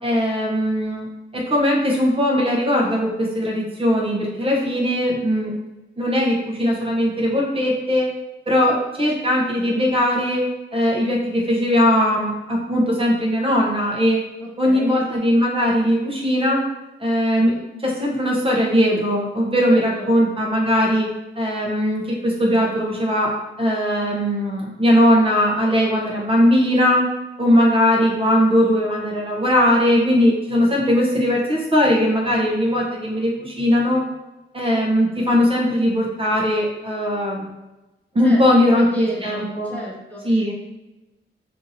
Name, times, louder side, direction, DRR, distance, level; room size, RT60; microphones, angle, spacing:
voice 1, 0.0-1.1 1.3-5.5 6.0-8.1 8.5-10.4 10.7-14.2 14.6-16.7 17.0-21.1 21.4-23.3 23.6-27.1 27.4-34.0 34.5-37.5 38.1-39.7 40.2-40.5, equal, 25° right, -3 dB, 0.7 m, -19 dB
voice 2, 4.4-4.7 14.4-15.0 18.9-19.0 19.7-20.1 38.2-40.5, right 1 dB, 10° left, -4 dB, 0.6 m, -34 dB
2.8 x 2.5 x 4.0 m, 1.0 s
wide cardioid pair, 145°, 20 cm